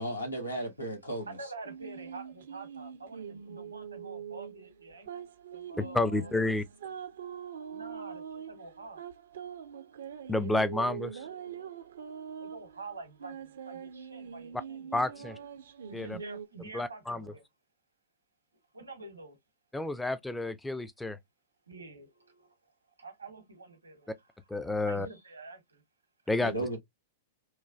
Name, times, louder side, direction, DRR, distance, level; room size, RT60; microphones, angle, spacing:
voice 1, 0.0-1.3 26.4-26.8, right 1 dB, 85° left, 1.1 m, -34 dB
voice 2, 1.3-6.3 7.7-9.0 12.4-15.4 15.8-17.4 18.7-19.4 21.7-22.7 23.0-24.1 24.8-25.8, right 3 dB, 80° right, 0.8 m, -47 dB
sound 1, 1.6-16.5, right 7 dB, 60° right, 0.4 m, -43 dB
voice 3, 5.8-6.6 10.3-11.3 14.9-15.4 15.9-16.2 16.7-17.3 19.7-21.2 24.5-25.1 26.3-26.5, left 2 dB, 5° left, 0.3 m, -30 dB
3.1 x 2.2 x 2.4 m
figure-of-eight pair, 100°, 0 cm